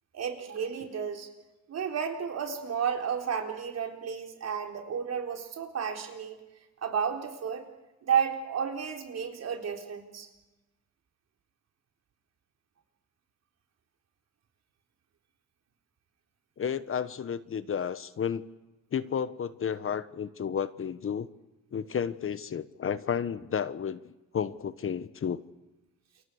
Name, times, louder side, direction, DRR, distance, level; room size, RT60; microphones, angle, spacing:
voice 1, 0.1-1.3 1.7-6.4 6.8-7.6 8.0-10.3, right 7 dB, 60° right, 3 dB, 4.1 m, -32 dB
voice 2, 16.6-18.4 18.9-21.3 21.7-24.0 24.3-25.4, left 7 dB, 45° left, 14 dB, 1.2 m, -32 dB
29.0 x 24.0 x 6.5 m, 1.0 s
cardioid pair, 90°, 30 cm